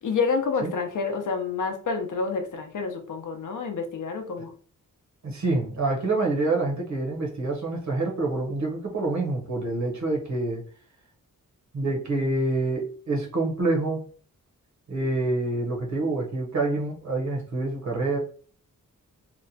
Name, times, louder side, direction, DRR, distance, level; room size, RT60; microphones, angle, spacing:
voice 1, 0.0-4.5, left 4 dB, 65° left, 0.5 m, -28 dB
voice 2, 5.2-10.6 11.7-14.0 14.9-18.2, right 2 dB, 55° right, 0.8 m, -27 dB
2.8 x 2.1 x 2.6 m
wide cardioid pair, 175°, 33 cm